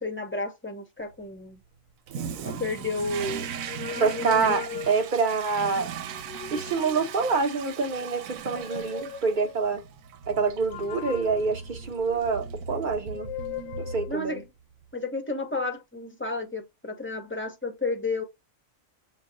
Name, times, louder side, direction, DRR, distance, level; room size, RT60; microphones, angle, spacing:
voice 1, 0.0-1.6 2.4-3.5 3.9-4.5 14.1-14.4 14.9-18.2, left 3 dB, 15° left, 0.6 m, -32 dB
Toilet flush, 2.1-14.4, right 7 dB, 90° right, 1.0 m, -38 dB
sound 1, 3.6-5.4 6.0-7.3 8.3-9.6 10.7-12.5 13.1-14.1, left 8 dB, 60° left, 0.6 m, -39 dB
voice 2, 4.0-5.9 6.5-9.8 10.3-13.3 13.9-14.4, right 4 dB, 45° right, 0.8 m, -26 dB
6.4 x 2.2 x 2.6 m
omnidirectional pair, 1.4 m